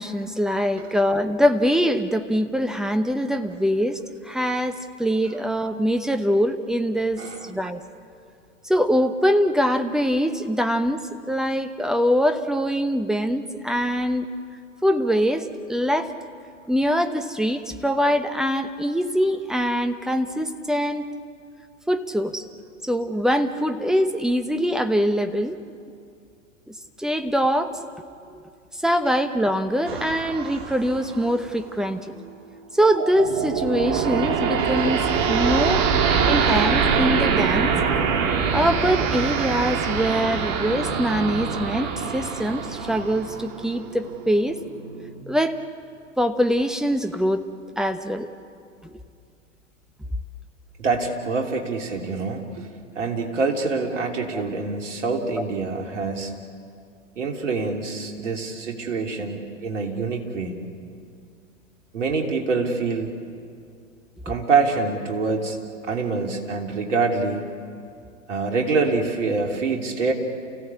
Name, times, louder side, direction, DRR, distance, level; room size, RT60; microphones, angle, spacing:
voice 1, 0.0-4.0 4.3-7.2 7.5-7.8 8.6-14.3 14.8-16.1 16.7-21.1 21.9-22.4 22.8-25.6 26.7-27.8 28.3-28.4 28.8-32.2 32.7-35.9 36.2-37.7 38.5-44.6 45.3-45.6 46.2-47.5 47.8-48.3 54.3-54.4, equal, ahead, 8 dB, 1.0 m, -23 dB
voice 2, 7.2-7.5 50.8-52.7 52.9-56.3 57.1-60.6 61.9-63.1 64.2-65.6 65.9-67.4 68.3-70.1, right 4 dB, 70° right, 2 dB, 3.3 m, -25 dB
sound 1, 29.9-31.8 33.0-45.2, right 6 dB, 40° right, 2.0 m, -24 dB
29.0 x 16.5 x 8.5 m, 2.4 s
figure-of-eight pair, 100°, 39 cm